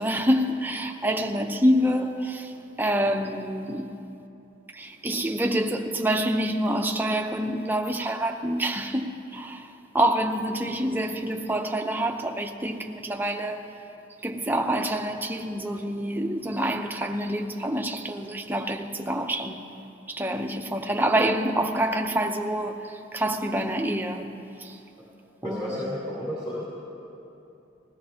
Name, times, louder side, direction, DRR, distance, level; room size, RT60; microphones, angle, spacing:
voice 1, 0.0-2.5 2.8-3.9 4.7-9.7 9.9-13.7 14.2-19.6 20.1-24.3 24.6-24.8 25.4-25.7, right 1 dB, 10° right, 0.7 m, -27 dB
voice 2, 25.4-26.6, left 1 dB, 30° left, 3.0 m, -32 dB
20.5 x 16.0 x 2.9 m
head